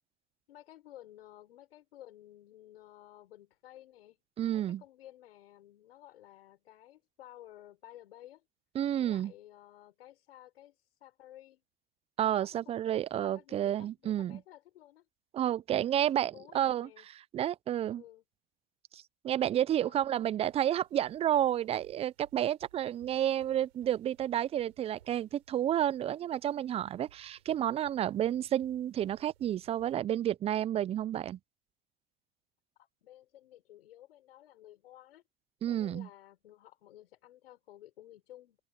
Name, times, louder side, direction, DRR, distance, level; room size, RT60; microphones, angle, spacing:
voice 1, 0.5-4.2 4.5-8.4 9.0-11.6 12.2-15.1 16.0-17.1 17.9-18.2 19.8-20.0 32.8-35.2 35.7-38.6, left 13 dB, 75° left, 6.0 m, -54 dB
voice 2, 4.4-4.8 8.7-9.3 12.2-14.4 15.3-16.9 17.3-18.0 18.9-31.4 35.6-36.1, right 11 dB, 20° right, 0.4 m, -30 dB
sound 1, 20.4-29.9, right 11 dB, 80° right, 5.0 m, -63 dB
open air
hypercardioid pair, 105°, 31 cm